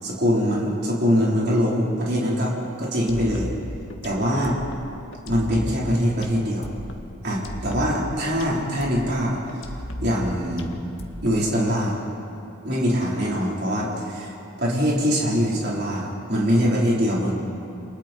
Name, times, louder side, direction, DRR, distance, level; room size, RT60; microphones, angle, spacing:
voice 1, 0.0-2.5 2.8-3.5 4.0-4.5 5.3-6.7 7.2-9.4 10.0-10.7 11.2-12.0 12.6-14.3 14.6-17.3, equal, 50° right, -5 dB, 4.5 m, -23 dB
sound 1, 3.1-11.7, equal, 70° left, 1.9 m, -36 dB
29.0 x 27.5 x 4.7 m, 2.7 s
head